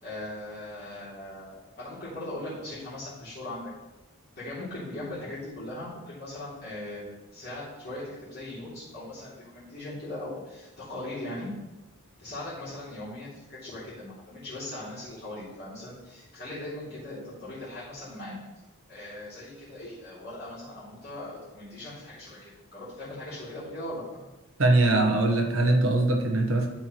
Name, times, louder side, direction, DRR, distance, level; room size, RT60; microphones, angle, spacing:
voice 1, 0.0-3.7 4.4-7.0 7.3-11.5 12.2-18.4 18.9-24.2, left 1 dB, 45° left, -11 dB, 2.9 m, -39 dB
voice 2, 24.6-26.7, right 2 dB, 70° right, 3 dB, 1.2 m, -22 dB
12.5 x 4.7 x 3.1 m, 1.0 s
head